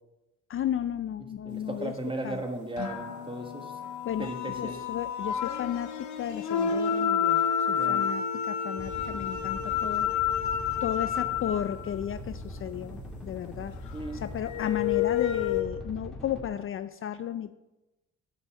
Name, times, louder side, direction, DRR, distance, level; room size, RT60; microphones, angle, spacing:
voice 1, 0.5-1.9 2.2-2.4 4.1-4.3 4.6-5.9 6.2-10.1 10.8-13.7 14.2-17.5, left 10 dB, 45° left, 12 dB, 0.4 m, -33 dB
voice 2, 1.2-3.7 4.2-4.8 7.7-8.1 13.9-14.3, right 1 dB, 15° right, 5 dB, 1.5 m, -36 dB
sound 1, 2.8-11.9 14.4-15.6, left 8 dB, 70° left, 1.1 m, -29 dB
sound 2, 8.8-16.5, equal, ahead, 2.4 m, -42 dB
8.1 x 5.4 x 7.6 m, 1.0 s
cardioid pair, 90°, 30 cm